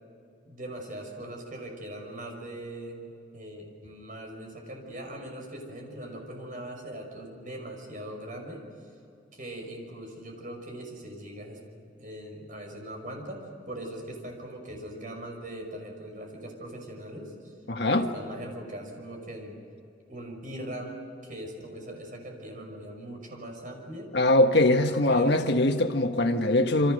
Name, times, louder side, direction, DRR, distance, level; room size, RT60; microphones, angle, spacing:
voice 1, 0.5-8.6 9.3-11.6 12.0-17.3 17.9-19.6 20.1-24.1 24.6-25.5, right 1 dB, 45° right, 2 dB, 5.8 m, -40 dB
voice 2, 17.7-18.0 24.1-26.9, left 1 dB, 65° left, 6 dB, 1.5 m, -22 dB
28.5 x 25.0 x 6.6 m, 2.6 s
head